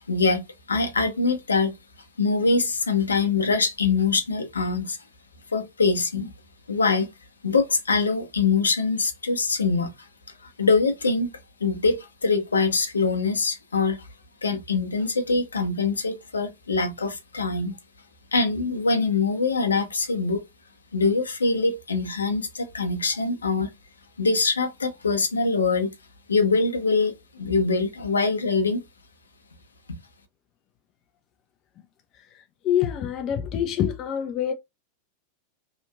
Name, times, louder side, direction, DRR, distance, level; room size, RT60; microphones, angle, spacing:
voice 1, 0.1-0.4 0.7-1.7 2.2-5.0 5.5-6.3 6.7-7.1 7.4-9.9 10.6-11.3 11.6-14.0 14.4-17.7 18.3-20.4 20.9-23.7 24.2-25.9 26.3-28.8, left 4 dB, 75° left, 0.6 m, -23 dB
voice 2, 32.3-34.5, left 9 dB, 35° left, 0.4 m, -26 dB
2.9 x 2.4 x 2.3 m
figure-of-eight pair, 90°, 0 cm